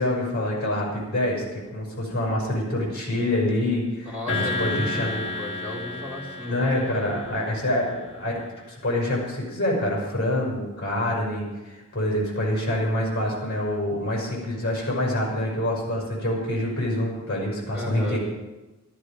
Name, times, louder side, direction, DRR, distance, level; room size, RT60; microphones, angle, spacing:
voice 1, 0.0-5.4 6.4-8.4 8.7-18.2, left 1 dB, 50° left, -2 dB, 5.9 m, -26 dB
voice 2, 4.0-6.7 7.0-7.6 17.7-18.2, left 1 dB, 5° right, -7 dB, 4.4 m, -34 dB
sound 1, 4.3-7.8, left 3 dB, 30° left, 3.6 m, -32 dB
14.5 x 13.5 x 5.1 m, 1.1 s
head